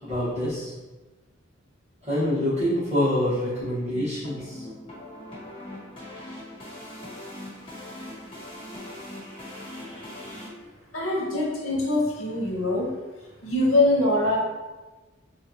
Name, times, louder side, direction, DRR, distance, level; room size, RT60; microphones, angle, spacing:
voice 1, 0.0-0.7 2.1-4.6, left 1 dB, 35° right, -15 dB, 1.4 m, -26 dB
sound 1, 3.6-10.5, left 1 dB, 25° left, 1.3 m, -41 dB
voice 2, 10.9-12.9 13.4-14.4, left 2 dB, 85° left, -3 dB, 1.0 m, -23 dB
4.4 x 2.5 x 2.9 m, 1.2 s
head